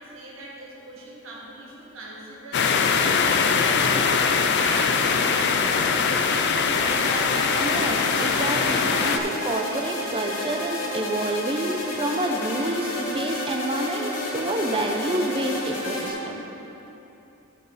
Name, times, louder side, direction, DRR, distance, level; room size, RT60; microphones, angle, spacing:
voice 1, 0.0-3.8 4.2-7.2, right 2 dB, 70° right, -4 dB, 1.7 m, -40 dB
sound 1, 2.5-9.2, left 5 dB, 55° left, 0.4 m, -22 dB
sound 2, 6.7-16.1, left 1 dB, 85° left, 1.6 m, -31 dB
voice 2, 7.6-16.4, right 1 dB, 25° right, 4 dB, 0.6 m, -28 dB
13.0 x 5.2 x 4.1 m, 3.0 s
head